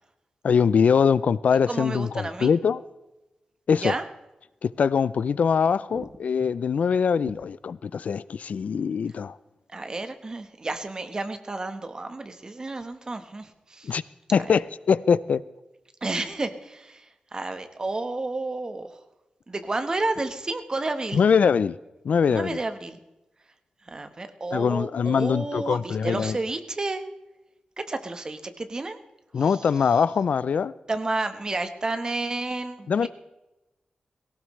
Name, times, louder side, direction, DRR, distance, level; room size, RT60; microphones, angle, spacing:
voice 1, 0.4-2.8 3.7-3.9 4.6-9.4 13.8-14.0 14.3-15.4 21.1-21.8 22.0-22.6 24.5-26.4 29.3-30.7 32.9-33.1, left 6 dB, 65° left, 18 dB, 0.4 m, -22 dB
voice 2, 1.7-2.5 3.8-4.0 5.9-6.1 9.7-14.0 14.4-14.5 16.0-17.1 17.3-18.9 19.5-21.3 22.3-23.0 23.9-27.0 27.9-29.0 29.3-29.7 30.9-33.1, right 2 dB, 25° right, 8 dB, 1.1 m, -31 dB
18.5 x 17.5 x 3.2 m, 0.99 s
wide cardioid pair, 175°, 3 cm